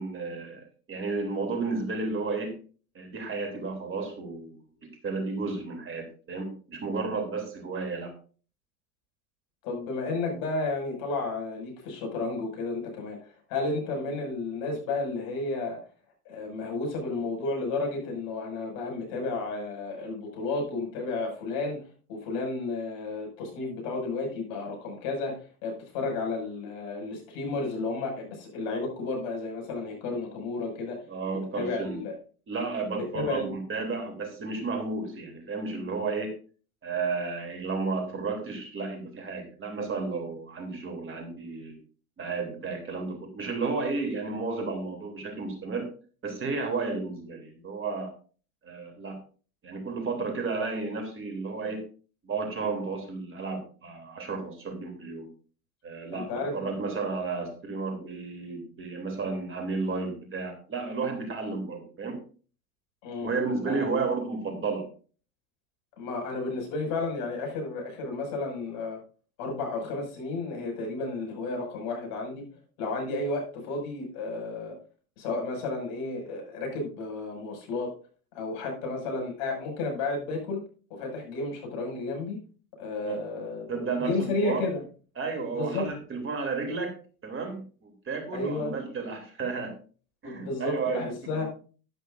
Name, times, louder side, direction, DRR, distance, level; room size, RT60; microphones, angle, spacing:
voice 1, 0.0-2.6 2.9-8.1 31.1-32.0 32.5-36.3 36.8-41.8 42.2-45.9 46.2-48.1 48.6-49.2 49.6-51.9 52.2-55.3 55.8-62.2 63.2-64.9 83.0-83.2 83.7-84.7 85.2-86.9 87.2-89.8 90.2-91.0 91.4-91.5, right 4 dB, 25° right, 4 dB, 3.2 m, -32 dB
voice 2, 9.6-15.8 16.2-21.8 22.1-31.0 31.3-32.2 32.9-33.5 56.1-56.7 63.0-63.3 63.6-63.9 66.0-69.0 69.4-72.4 72.8-74.8 75.2-77.9 78.3-80.6 80.9-82.4 82.8-84.8 85.5-85.9 88.3-88.7 90.2-91.4, left 3 dB, 55° left, 2 dB, 6.4 m, -32 dB
12.0 x 11.5 x 2.6 m, 0.39 s
hypercardioid pair, 90°, 44 cm